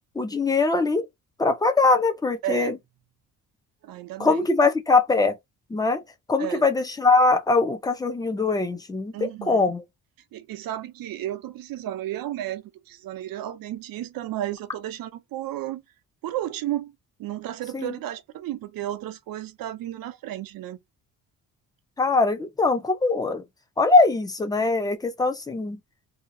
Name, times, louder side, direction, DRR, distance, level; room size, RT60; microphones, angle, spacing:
voice 1, 0.2-1.1 1.4-2.8 4.2-5.4 5.7-6.0 6.3-9.8 17.7-17.9 22.0-23.4 23.8-25.8, left 3 dB, 10° left, 0.6 m, -22 dB
voice 2, 2.4-2.7 3.8-4.5 6.4-6.6 9.1-9.7 10.3-15.8 16.2-16.9 17.2-20.8, right 13 dB, 70° right, 0.7 m, -33 dB
2.8 x 2.4 x 3.7 m
cardioid pair, 155°, 36 cm